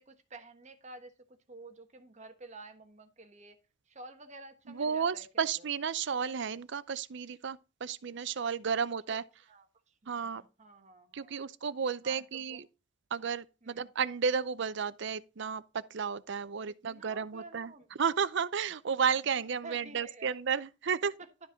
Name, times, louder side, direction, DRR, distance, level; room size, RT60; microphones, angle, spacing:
voice 1, 0.0-3.6 3.9-5.7 9.1-9.2 9.5-11.4 12.0-12.6 13.6-13.9 16.7-17.9 19.6-20.4 21.2-21.3, right 2 dB, 40° right, 1.3 m, -51 dB
voice 2, 4.7-9.2 10.1-10.4 11.1-12.7 13.1-15.6 15.9-17.7 18.0-21.1, right 6 dB, 65° right, 0.6 m, -32 dB
12.0 x 5.2 x 3.7 m
head